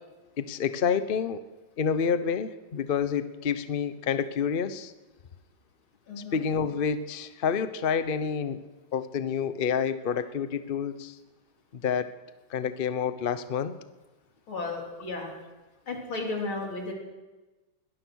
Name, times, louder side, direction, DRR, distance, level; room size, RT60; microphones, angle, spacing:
voice 1, 0.4-1.4 1.8-4.9 6.3-8.6 8.9-11.1 11.7-12.1 12.5-13.8, left 7 dB, 55° left, 12 dB, 0.6 m, -28 dB
voice 2, 6.1-6.4 14.5-15.4 15.9-16.9, left 3 dB, 80° left, 0 dB, 4.4 m, -34 dB
22.0 x 18.5 x 6.3 m, 1.2 s
omnidirectional pair, 2.2 m